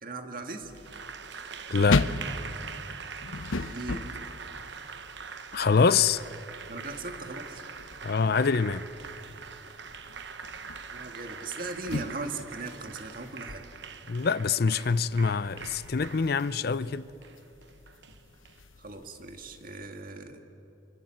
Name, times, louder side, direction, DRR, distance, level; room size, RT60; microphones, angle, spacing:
voice 1, 0.0-0.7 3.7-4.1 6.7-7.6 10.9-13.6 18.8-20.4, right 3 dB, 45° right, 1.9 m, -38 dB
sound 1, 0.6-19.7, left 3 dB, 85° left, 0.8 m, -38 dB
Applause, 0.7-18.6, right 6 dB, 65° right, 1.1 m, -43 dB
voice 2, 1.7-2.1 5.5-6.2 8.0-8.8 14.1-17.0, left 5 dB, 50° left, 0.5 m, -25 dB
28.5 x 25.0 x 7.7 m
head